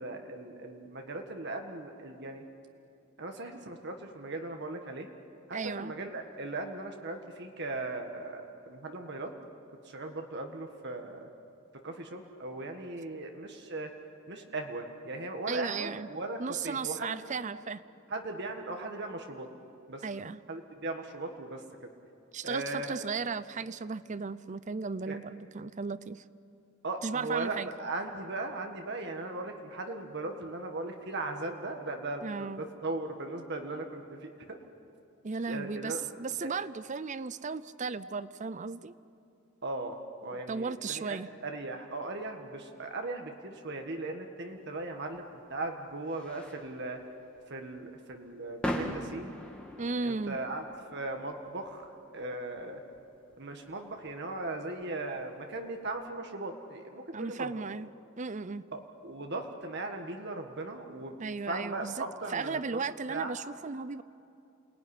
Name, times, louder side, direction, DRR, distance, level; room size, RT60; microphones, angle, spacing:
voice 1, 0.0-2.4 3.2-5.1 5.5-9.3 9.8-11.3 11.8-13.9 14.3-17.2 18.1-19.5 19.9-20.0 20.5-21.6 22.4-23.1 25.1-25.2 26.8-34.6 35.5-36.0 36.4-36.5 39.6-47.0 47.5-49.4 50.0-50.6 50.9-52.8 53.4-57.6 58.7-61.1 61.5-62.8 63.1-63.3, right 2 dB, 55° right, 4 dB, 1.7 m, -38 dB
voice 2, 5.5-5.9 15.5-16.1 16.4-17.8 20.0-20.4 22.3-26.2 27.0-27.7 32.2-32.6 35.2-38.9 40.5-41.3 49.8-50.4 57.1-57.9 58.2-58.6 61.2-62.0 62.3-64.0, right 4 dB, 35° right, 16 dB, 0.5 m, -35 dB
sound 1, 44.7-56.0, equal, 5° left, 2.1 m, -43 dB
28.5 x 19.5 x 9.9 m, 2.6 s
head